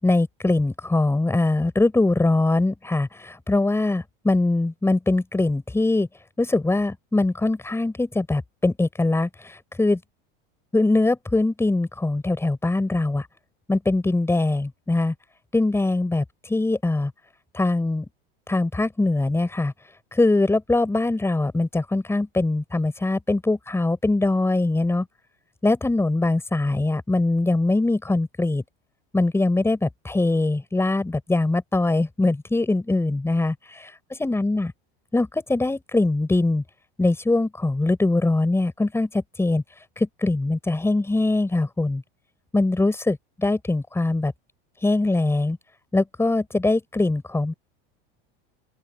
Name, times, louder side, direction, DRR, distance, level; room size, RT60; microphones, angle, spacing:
voice 1, 0.0-6.1 6.4-10.0 10.7-13.3 13.7-15.1 15.5-17.1 17.5-18.1 18.5-19.7 20.1-25.1 25.6-28.6 29.1-34.7 35.1-36.6 37.0-39.6 40.0-42.0 42.5-44.3 44.8-45.6 45.9-47.5, left 2 dB, 10° left, 6.4 m, -22 dB
open air
supercardioid pair, 115°, 29 cm